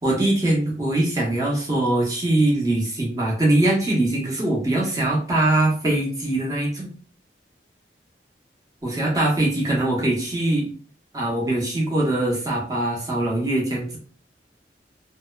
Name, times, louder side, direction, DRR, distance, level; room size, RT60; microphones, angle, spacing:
voice 1, 0.0-6.9 8.8-10.7 11.1-14.0, right 1 dB, 20° right, -3 dB, 0.8 m, -22 dB
2.7 x 2.0 x 2.2 m, 0.41 s
head